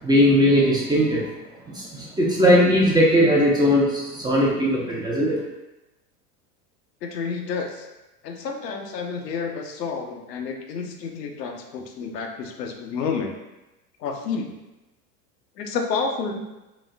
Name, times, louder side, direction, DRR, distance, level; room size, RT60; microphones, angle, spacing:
voice 1, 0.0-1.2 1.7-5.3, equal, 10° right, -5 dB, 0.4 m, -19 dB
voice 2, 7.0-7.8 8.2-13.3 14.0-14.5 15.6-16.4, left 5 dB, 85° left, 3 dB, 0.6 m, -30 dB
4.0 x 2.5 x 2.2 m, 1.0 s
hypercardioid pair, 90°, 47 cm